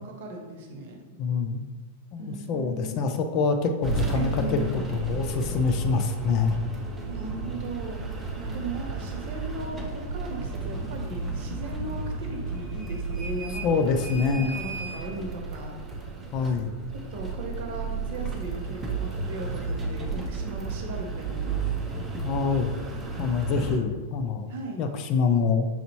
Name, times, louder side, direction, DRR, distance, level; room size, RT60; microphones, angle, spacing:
voice 1, 0.0-1.0 2.2-3.0 4.1-4.9 7.1-8.0 8.4-15.8 17.1-21.7 24.5-24.9, right 2 dB, 60° right, 2 dB, 0.8 m, -37 dB
voice 2, 1.2-1.6 2.1-6.6 13.6-14.6 16.3-16.8 22.2-22.7 23.2-24.5 24.8-25.7, left 5 dB, 45° left, 6 dB, 0.5 m, -25 dB
sound 1, 3.8-23.8, right 3 dB, 20° right, 0.6 m, -33 dB
5.6 x 2.6 x 2.9 m, 1.4 s
hypercardioid pair, 105°, 0 cm